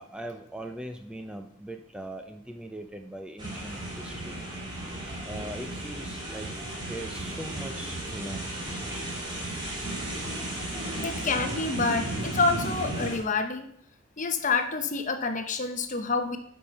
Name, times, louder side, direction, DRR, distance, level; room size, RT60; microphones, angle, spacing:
voice 1, 0.0-4.3 5.3-6.5 6.9-8.5 11.0-11.1, right 1 dB, 5° right, 5 dB, 0.5 m, -40 dB
sound 1, 3.4-13.2, right 1 dB, 25° right, 3.0 m, -34 dB
voice 2, 11.0-13.7 14.2-16.4, left 4 dB, 40° left, 8 dB, 0.9 m, -28 dB
10.5 x 5.6 x 5.6 m, 0.69 s
head